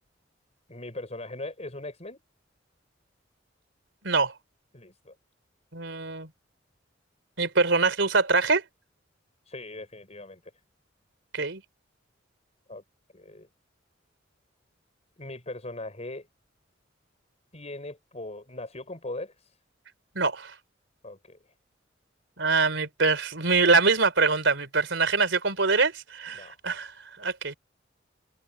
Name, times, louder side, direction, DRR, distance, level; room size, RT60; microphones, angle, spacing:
voice 1, 0.7-2.2 4.7-5.1 9.5-10.4 12.7-12.8 13.1-13.5 15.2-16.3 17.5-19.5 21.0-21.4 26.3-26.6, left 2 dB, 35° left, 6.8 m, -39 dB
voice 2, 5.7-6.3 7.4-8.6 11.3-11.6 20.2-20.5 22.4-26.9 27.2-27.5, right 4 dB, 75° right, 4.0 m, -24 dB
head